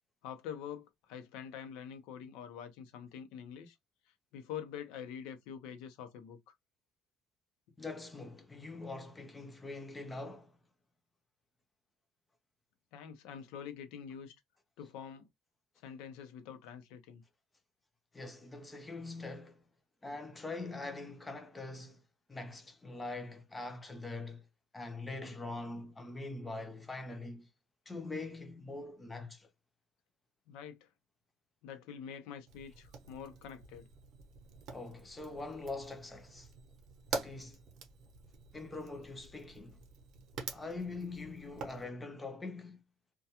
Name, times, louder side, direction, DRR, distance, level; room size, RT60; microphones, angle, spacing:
voice 1, 0.2-3.8 4.3-6.5 12.9-14.3 14.8-15.3 15.8-17.2 30.5-30.9 31.6-33.9, left 8 dB, 90° left, 0.6 m, -46 dB
voice 2, 7.8-10.5 18.1-19.6 20.0-22.0 22.3-24.4 24.7-27.5 27.9-29.5 34.7-36.5 37.1-37.6 38.5-39.8 40.5-42.8, left 3 dB, 10° left, 0.5 m, -43 dB
Fire, 32.5-41.8, right 5 dB, 55° right, 0.6 m, -46 dB
2.2 x 2.2 x 2.8 m
cardioid pair, 160°, 0 cm